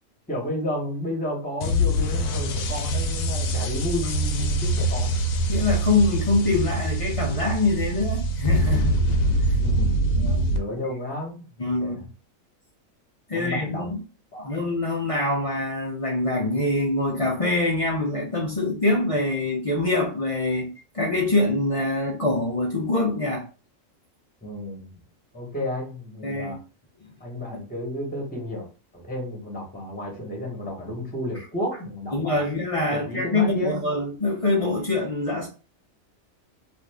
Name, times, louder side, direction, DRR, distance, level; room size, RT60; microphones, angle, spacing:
voice 1, 0.3-5.2 9.6-10.0 10.4-12.0 13.3-13.9 14.3-14.5 24.4-24.9 25.3-26.6 27.2-28.7 28.9-32.4 32.9-33.9, left 1 dB, 5° left, 1.0 m, -32 dB
sound 1, 1.6-10.6, right 1 dB, 85° left, 1.0 m, -24 dB
voice 2, 5.5-9.0 10.2-10.4 11.6-12.1 13.3-14.0 14.4-23.4 26.2-26.6 32.1-35.5, left 2 dB, 45° left, 0.4 m, -24 dB
2.6 x 2.5 x 3.4 m
omnidirectional pair, 1.4 m